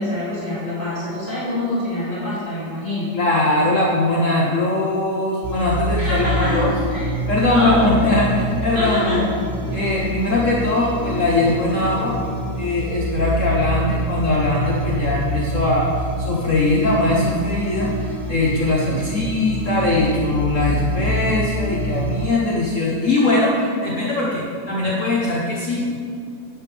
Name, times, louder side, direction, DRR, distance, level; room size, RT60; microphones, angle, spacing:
voice 1, 0.0-3.1 6.0-7.1 7.4-8.1 8.7-9.3 9.6-10.0, left 1 dB, 30° left, -11 dB, 2.8 m, -25 dB
voice 2, 3.1-6.7 7.3-9.3 9.7-12.1 12.6-15.9 16.2-26.0, left 2 dB, 50° left, -4 dB, 1.3 m, -20 dB
sound 1, 5.4-22.3, right 1 dB, 55° right, 0.4 m, -26 dB
10.5 x 9.5 x 3.4 m, 2.3 s
omnidirectional pair, 1.9 m